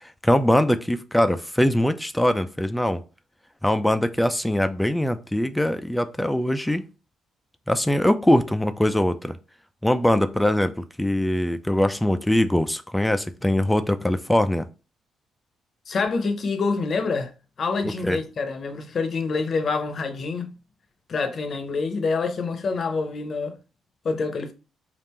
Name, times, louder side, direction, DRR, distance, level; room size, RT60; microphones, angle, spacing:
voice 1, 0.0-3.0 3.6-6.8 7.7-9.3 9.8-10.7 11.0-14.7 17.8-18.2, left 1 dB, 5° left, 0.4 m, -22 dB
voice 2, 15.9-17.3 17.6-20.5 21.1-23.5 24.0-24.5, left 4 dB, 50° left, 0.7 m, -26 dB
3.5 x 2.4 x 4.3 m
cardioid pair, 90°, 0 cm